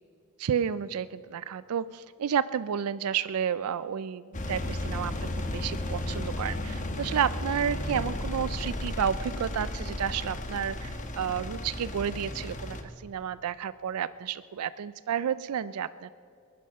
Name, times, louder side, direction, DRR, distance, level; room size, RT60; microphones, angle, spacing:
voice 1, 0.4-5.1 5.5-12.8 13.0-16.1, right 8 dB, 80° right, 16 dB, 0.4 m, -31 dB
Engine, 4.3-12.8, left 1 dB, 35° left, 1.1 m, -34 dB
21.5 x 11.0 x 5.4 m, 2.5 s
head